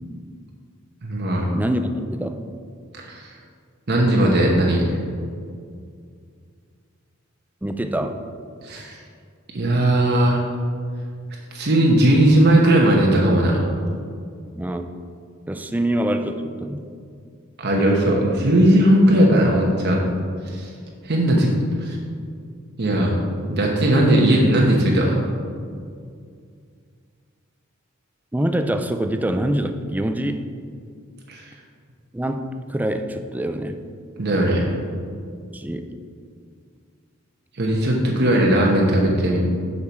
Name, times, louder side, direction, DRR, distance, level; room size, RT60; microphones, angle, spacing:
voice 1, 1.0-1.5 3.1-3.3 3.9-4.9 8.6-9.0 9.5-10.4 11.5-13.6 17.6-20.0 20.5-20.7 21.0-21.5 21.8-22.0 22.8-23.2 23.5-25.3 31.3-31.4 34.2-34.8 37.6-39.4, right 1 dB, 55° right, -1 dB, 1.0 m, -18 dB
voice 2, 1.5-2.5 7.6-8.2 14.6-14.9 15.5-16.8 28.3-30.5 32.1-33.8 35.5-35.9, right 1 dB, 10° right, 7 dB, 0.4 m, -25 dB
7.0 x 6.6 x 4.6 m, 2.2 s
head